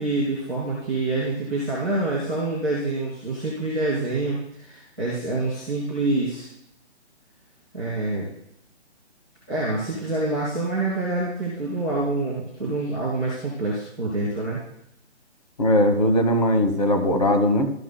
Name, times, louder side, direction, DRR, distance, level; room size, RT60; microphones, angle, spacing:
voice 1, 0.0-6.5 7.7-8.3 9.5-14.6, right 2 dB, 5° left, -10 dB, 0.8 m, -26 dB
voice 2, 15.6-17.7, left 1 dB, 35° left, 6 dB, 1.2 m, -19 dB
13.0 x 10.0 x 2.3 m, 0.75 s
hypercardioid pair, 175°, 34 cm